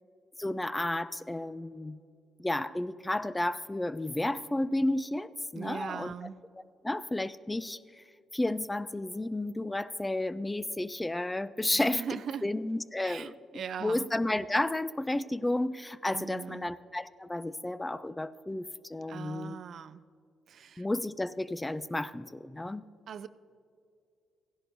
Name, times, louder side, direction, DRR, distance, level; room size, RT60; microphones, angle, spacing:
voice 1, 0.4-2.0 2.4-6.1 6.8-8.0 8.3-19.6 20.8-22.9, left 1 dB, 15° left, 15 dB, 0.3 m, -32 dB
voice 2, 5.5-6.4 11.7-12.4 13.0-14.1 16.1-16.7 19.1-20.0 20.5-20.9 23.1-23.3, right 7 dB, 60° right, 14 dB, 0.4 m, -40 dB
15.0 x 11.0 x 2.7 m, 2.4 s
cardioid pair, 90°, 0 cm